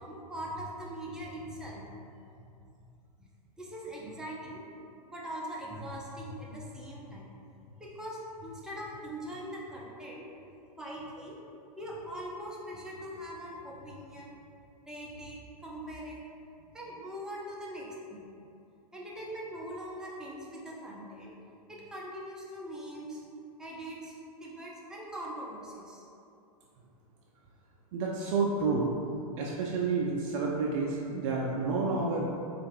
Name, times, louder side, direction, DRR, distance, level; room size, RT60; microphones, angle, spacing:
voice 1, 0.0-1.9 2.4-2.5 3.6-4.6 5.1-7.3 7.8-10.3 10.8-11.4 11.8-14.4 14.9-16.2 16.6-18.2 18.9-21.3 21.7-23.2 23.6-26.1, equal, 5° right, -5 dB, 0.6 m, -41 dB
voice 2, 27.9-28.9 29.4-32.3, right 4 dB, 50° right, -3 dB, 0.5 m, -29 dB
4.4 x 2.5 x 3.0 m, 2.6 s
hypercardioid pair, 115°, 20 cm